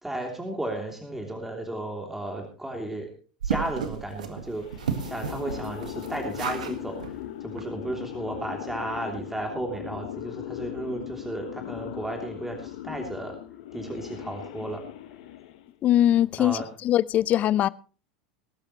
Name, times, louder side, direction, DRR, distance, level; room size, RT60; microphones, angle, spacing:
voice 1, 0.0-3.1 3.4-13.4 13.7-14.8 16.4-16.7, right 1 dB, 5° right, 3.2 m, -34 dB
sound 1, 3.4-6.7 7.0-7.1 7.6-7.7 7.9-8.0, right 7 dB, 75° right, 1.7 m, -33 dB
sound 2, 4.6-15.8, left 13 dB, 60° left, 1.3 m, -39 dB
voice 2, 15.8-16.6 16.8-17.7, left 12 dB, 40° left, 0.5 m, -21 dB
20.5 x 12.0 x 3.2 m
figure-of-eight pair, 85°, 4 cm